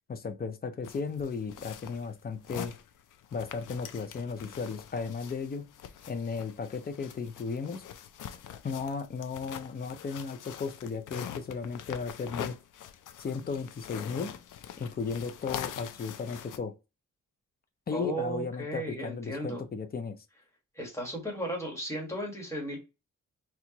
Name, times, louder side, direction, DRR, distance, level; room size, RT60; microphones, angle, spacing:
voice 1, 0.1-2.7 3.3-5.7 6.1-7.8 8.6-12.5 13.2-14.3 14.8-16.8 17.9-20.2, left 5 dB, 30° left, 0.6 m, -35 dB
sound 1, 0.8-16.6, left 9 dB, 75° left, 0.5 m, -44 dB
voice 2, 17.9-19.6 20.7-22.8, right 1 dB, 10° left, 1.5 m, -35 dB
4.4 x 2.4 x 2.9 m
wide cardioid pair, 135°, 31 cm